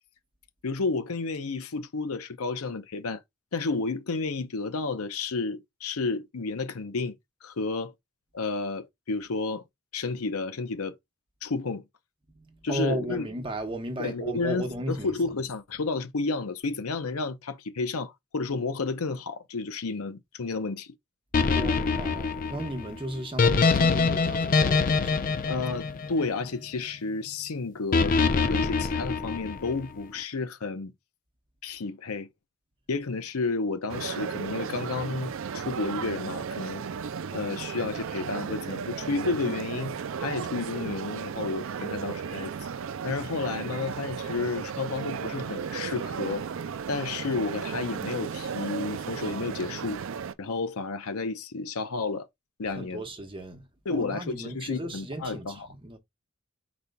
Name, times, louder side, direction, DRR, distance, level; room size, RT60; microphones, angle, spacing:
voice 1, 0.6-3.2 3.5-7.1 7.4-7.9 8.3-9.6 9.9-10.9 11.4-11.8 12.6-13.3 14.0-20.9 25.4-30.9 31.6-32.3 32.9-36.8 37.3-42.5 43.0-46.4 46.9-50.0 50.4-52.3 52.6-53.0 53.9-55.7, left 3 dB, 90° left, 0.7 m, -31 dB
voice 2, 12.4-15.1 21.5-25.2 52.7-53.6 53.9-56.0, right 1 dB, 25° right, 0.9 m, -35 dB
sound 1, 21.3-26.6 27.9-29.8, left 4 dB, 40° left, 0.4 m, -24 dB
sound 2, 33.9-50.3, right 6 dB, 65° right, 0.4 m, -35 dB
5.1 x 4.3 x 2.2 m
head